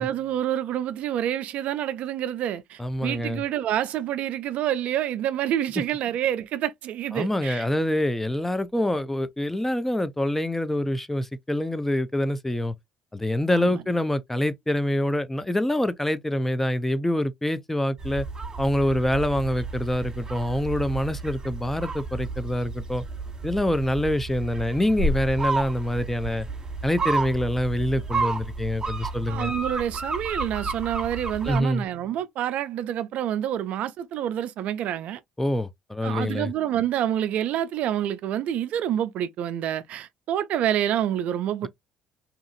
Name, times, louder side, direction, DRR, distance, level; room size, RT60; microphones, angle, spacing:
voice 1, 0.0-7.6 13.5-13.8 29.3-35.2 36.0-41.7, right 11 dB, 65° right, 0.4 m, -27 dB
voice 2, 2.8-3.4 7.1-12.7 13.1-18.3 18.6-23.0 23.4-26.5 26.8-29.5 31.4-31.9 35.4-36.5, left 1 dB, 10° left, 0.5 m, -25 dB
sound 1, 18.0-31.6, right 3 dB, 25° right, 1.3 m, -31 dB
2.8 x 2.5 x 2.4 m
supercardioid pair, 65°, 2 cm